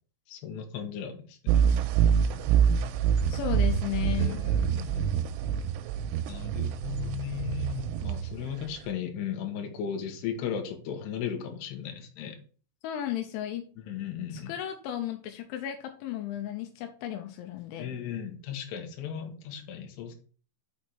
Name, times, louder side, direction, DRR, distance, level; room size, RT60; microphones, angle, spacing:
voice 1, 0.3-1.6 4.2-5.3 6.2-12.4 13.9-14.5 17.8-20.1, left 8 dB, 70° left, 4 dB, 2.9 m, -36 dB
sound 1, 1.5-8.9, right 8 dB, 85° right, 2.9 m, -26 dB
voice 2, 3.3-4.4 12.8-13.6 14.3-17.9, left 11 dB, 85° left, 6 dB, 3.0 m, -34 dB
6.7 x 5.3 x 4.4 m, 0.40 s
omnidirectional pair, 5.7 m